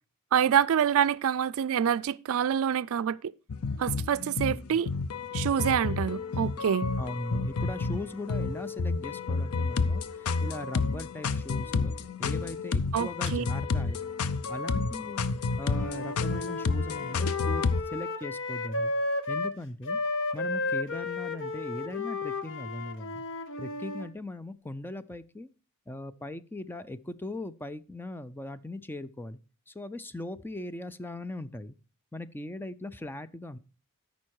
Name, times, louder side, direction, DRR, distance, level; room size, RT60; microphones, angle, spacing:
voice 1, 0.3-3.3 3.8-4.9 5.3-6.9 12.9-13.4, right 8 dB, 70° right, 0.4 m, -26 dB
sound 1, 3.5-17.8, left 4 dB, 80° left, 0.6 m, -30 dB
voice 2, 4.2-4.8 7.0-11.9 12.2-14.0 14.5-15.2 15.6-18.9 19.3-20.0 20.3-23.2 23.6-25.5 25.9-29.4 29.7-31.7 32.1-33.6, left 1 dB, 10° left, 0.4 m, -39 dB
Wind instrument woodwind instrument, 15.6-19.6 19.8-24.1, left 3 dB, 60° left, 0.9 m, -33 dB
13.0 x 5.3 x 4.6 m
head